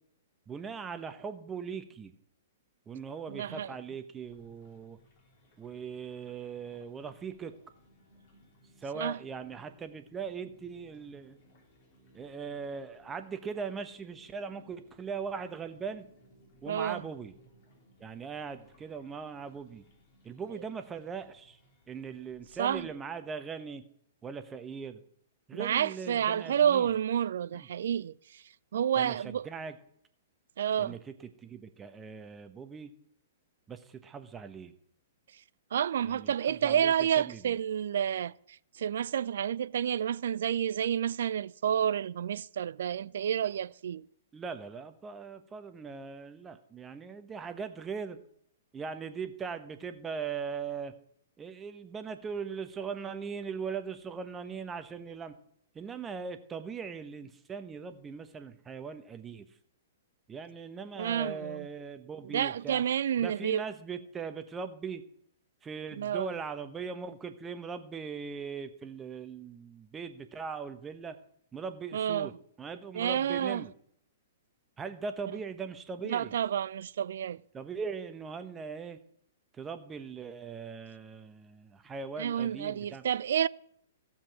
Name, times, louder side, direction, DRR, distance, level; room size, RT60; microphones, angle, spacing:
voice 1, 0.5-2.1 2.9-5.0 5.6-7.5 8.8-11.4 12.1-16.1 16.6-17.3 18.0-19.8 20.2-21.6 21.9-23.8 24.2-25.0 25.5-26.9 27.5-27.7 29.0-29.8 30.8-32.9 33.7-34.7 36.0-37.6 44.3-48.2 48.7-50.9 51.4-55.3 55.7-59.6 60.3-62.8 63.2-65.0 65.6-71.2 71.5-73.7 74.8-76.4 77.5-79.0 79.5-83.0, right 5 dB, 15° right, 1.0 m, -40 dB
voice 2, 3.3-3.7 9.0-9.2 16.7-17.0 22.6-22.9 25.5-28.4 28.7-29.5 30.6-30.9 35.7-44.1 61.0-61.7 62.2-63.6 66.0-66.3 71.9-72.3 72.9-73.6 76.0-77.4 82.2-83.5, right 9 dB, 55° right, 0.3 m, -30 dB
sound 1, 4.2-22.9, equal, 40° left, 3.3 m, -63 dB
15.0 x 7.4 x 4.7 m
figure-of-eight pair, 110°, 0 cm